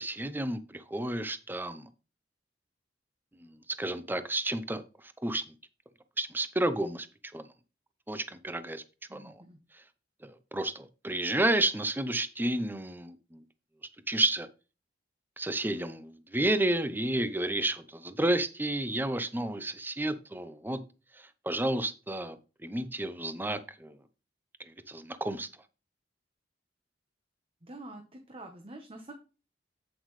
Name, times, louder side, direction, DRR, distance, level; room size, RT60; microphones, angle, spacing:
voice 1, 0.0-1.9 3.4-3.5 3.8-4.8 5.2-5.4 6.2-7.1 7.3-7.4 8.1-8.8 9.1-9.4 10.2-13.4 14.1-14.5 15.4-20.8 21.4-22.4 22.6-24.0 24.6-25.5, right 1 dB, 10° right, 12 dB, 0.7 m, -31 dB
voice 2, 9.1-9.6 27.6-29.1, right 2 dB, 30° right, 3 dB, 1.1 m, -46 dB
8.4 x 7.7 x 3.2 m, 0.33 s
head